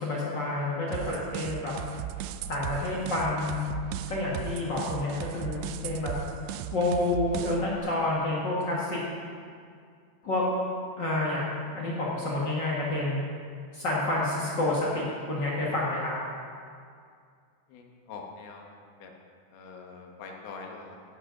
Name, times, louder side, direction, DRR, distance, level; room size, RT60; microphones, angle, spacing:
voice 1, 0.0-1.7 2.5-3.6 4.1-6.1 6.7-9.0 10.2-10.4 11.0-13.2 13.7-16.2, left 2 dB, 50° left, -5 dB, 1.3 m, -29 dB
sound 1, 0.9-7.8, right 10 dB, 85° right, 2.7 m, -37 dB
voice 2, 18.1-18.7 19.0-19.1 19.5-21.0, left 4 dB, 70° left, 1 dB, 3.0 m, -43 dB
16.0 x 10.5 x 3.9 m, 2.2 s
omnidirectional pair, 4.7 m